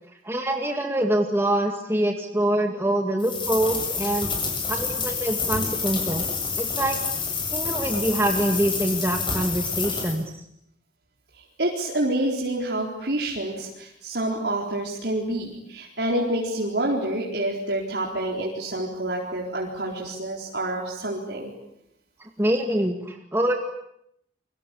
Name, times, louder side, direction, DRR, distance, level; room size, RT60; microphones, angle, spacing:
voice 1, 0.2-4.3 4.7-6.3 6.6-7.0 7.5-10.4 22.2-23.5, right 1 dB, 15° right, 3 dB, 2.0 m, -25 dB
sound 1, 3.2-10.2, left 5 dB, 25° left, 7.4 m, -28 dB
voice 2, 11.6-21.5, right 1 dB, 65° right, -2 dB, 4.2 m, -28 dB
29.5 x 24.0 x 8.5 m, 0.77 s
head